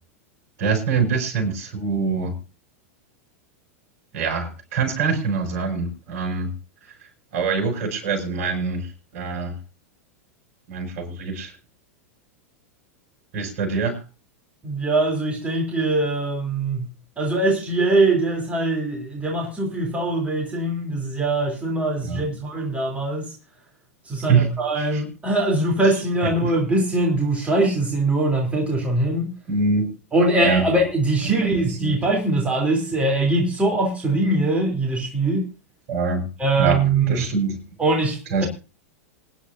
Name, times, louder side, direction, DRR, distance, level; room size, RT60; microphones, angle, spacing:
voice 1, 0.6-2.3 4.1-6.5 7.3-9.5 10.7-11.5 13.3-14.0 22.0-22.2 24.3-24.5 24.8-25.0 26.4-26.5 29.5-29.9 30.4-30.7 31.2-32.0 35.9-36.3 36.6-37.6 38.3-38.5, right 5 dB, 55° right, 2 dB, 6.4 m, -24 dB
voice 2, 14.6-16.9 17.2-23.3 24.0-29.3 30.1-35.5 36.4-37.3 37.8-38.4, right 2 dB, 15° right, -1 dB, 3.5 m, -22 dB
26.5 x 10.5 x 2.7 m, 0.30 s
hypercardioid pair, 95°, 8 cm